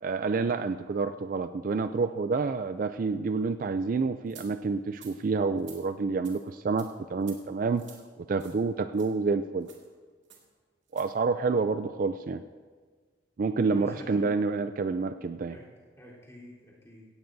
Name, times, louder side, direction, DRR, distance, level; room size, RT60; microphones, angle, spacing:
voice 1, 0.0-7.8 8.3-9.7 10.9-12.4 13.4-15.6, right 4 dB, 45° right, 10 dB, 0.3 m, -28 dB
sound 1, 4.3-4.5 4.9-5.2 5.6-5.8 6.2-6.4 6.8-6.9 7.2-7.4 7.7-8.0 8.4-8.6 8.9-9.1 9.6-9.8 10.3-10.4 10.9-11.1, right 8 dB, 70° right, 2.1 m, -50 dB
voice 2, 13.5-14.5 15.5-17.1, left 1 dB, 15° left, -7 dB, 3.6 m, -49 dB
16.5 x 16.0 x 2.7 m, 1.5 s
head